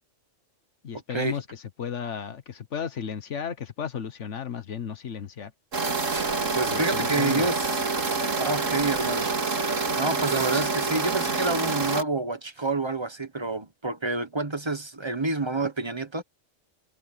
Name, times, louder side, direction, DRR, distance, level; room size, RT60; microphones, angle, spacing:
voice 1, 0.8-5.5 6.7-7.5, left 7 dB, 65° left, 1.5 m, -34 dB
sound 1, 5.7-12.0, right 4 dB, 80° right, 2.9 m, -27 dB
voice 2, 6.5-7.8 8.4-9.3 10.0-16.2, right 3 dB, 20° right, 1.2 m, -28 dB
omnidirectional pair, 1.3 m